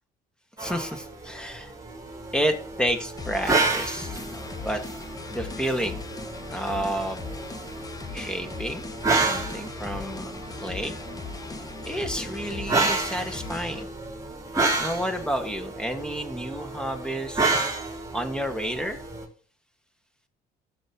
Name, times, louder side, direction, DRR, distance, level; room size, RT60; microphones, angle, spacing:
voice 1, 0.6-1.7 2.3-4.8 5.3-6.0 6.5-7.2 8.1-8.8 9.2-11.0 11.8-13.9 14.8-17.6 18.1-19.0, equal, 5° left, 6 dB, 1.8 m, -30 dB
sound 1, 0.6-19.2, right 3 dB, 20° right, 3.6 m, -31 dB
sound 2, 3.2-13.8, left 4 dB, 20° left, 0.7 m, -39 dB
15.5 x 7.6 x 3.0 m, 0.42 s
cardioid pair, 110°, 17 cm